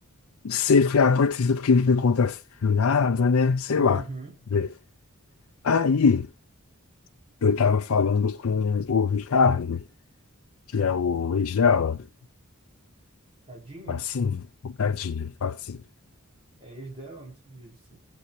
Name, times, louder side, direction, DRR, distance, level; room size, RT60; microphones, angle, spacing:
voice 1, 0.4-4.0 4.5-4.7 5.6-6.3 7.4-9.8 10.7-12.0 13.9-14.4 14.6-15.8, left 5 dB, 65° left, 0.5 m, -22 dB
voice 2, 3.8-4.3 13.5-14.0 16.6-18.0, right 2 dB, 25° right, 5.2 m, -41 dB
19.5 x 7.8 x 2.7 m
head